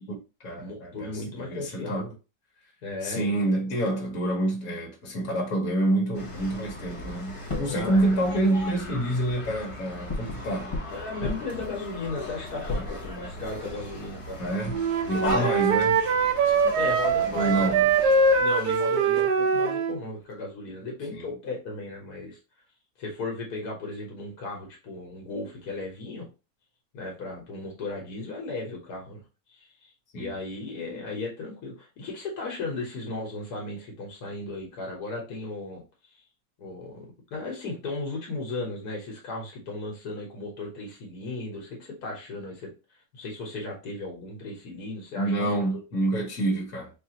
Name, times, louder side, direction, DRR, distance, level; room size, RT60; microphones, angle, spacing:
voice 1, 0.1-2.1 3.0-10.8 14.4-14.8 15.1-16.0 17.3-17.9 21.1-21.3 30.1-30.3 45.1-46.9, right 1 dB, 70° left, 1.6 m, -27 dB
voice 2, 0.6-2.1 2.8-3.3 3.7-3.8 7.7-8.2 10.9-14.4 15.3-15.6 16.8-17.7 18.4-22.4 23.0-26.3 26.9-29.2 29.5-35.8 36.1-36.2 36.6-42.7 43.1-45.6, left 3 dB, 85° left, 1.7 m, -36 dB
sound 1, 6.1-19.2, left 2 dB, 25° left, 0.8 m, -37 dB
Wind instrument woodwind instrument, 14.7-20.0, right 4 dB, 90° right, 1.2 m, -23 dB
4.5 x 2.5 x 2.9 m
omnidirectional pair, 1.6 m